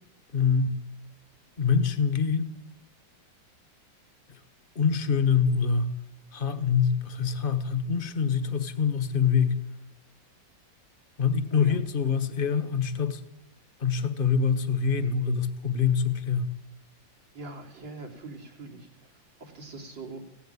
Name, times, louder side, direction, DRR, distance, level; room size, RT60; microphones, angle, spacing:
voice 1, 0.3-0.8 1.6-2.5 4.3-4.4 4.7-5.9 6.3-9.6 11.2-13.2 13.8-16.5, left 6 dB, 30° left, 11 dB, 1.4 m, -25 dB
voice 2, 17.3-20.2, right 3 dB, 80° right, 0 dB, 4.2 m, -43 dB
16.5 x 16.0 x 9.7 m, 0.83 s
omnidirectional pair, 2.0 m